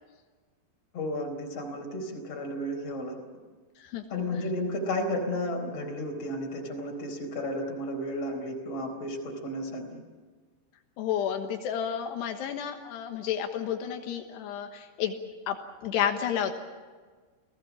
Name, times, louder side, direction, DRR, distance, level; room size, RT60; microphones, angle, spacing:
voice 1, 0.9-3.2 4.1-10.0, left 1 dB, 40° left, 2 dB, 5.1 m, -33 dB
voice 2, 11.0-15.2 15.5-15.6 15.8-16.6, left 9 dB, 85° left, 4 dB, 3.5 m, -31 dB
29.5 x 18.0 x 7.2 m, 1.4 s
omnidirectional pair, 4.8 m